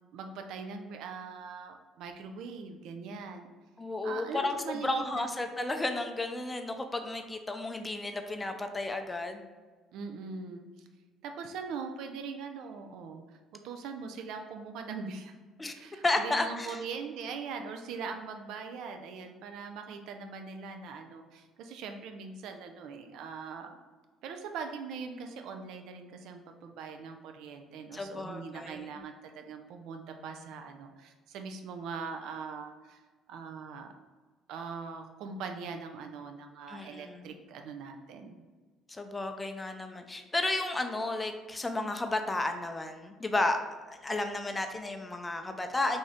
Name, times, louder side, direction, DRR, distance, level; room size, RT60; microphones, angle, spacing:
voice 1, 0.1-3.5 4.0-5.3 9.9-10.6 11.2-15.3 15.7-23.7 24.2-33.0 33.3-33.9 34.5-38.4, right 5 dB, 70° right, 5 dB, 0.4 m, -41 dB
voice 2, 3.8-4.5 4.8-9.5 15.6-15.7 16.0-16.8 27.9-28.9 36.7-37.3 38.9-43.6 43.9-46.0, left 2 dB, 20° left, 6 dB, 0.5 m, -32 dB
3.6 x 2.6 x 3.4 m, 1.4 s
supercardioid pair, 70°, 0 cm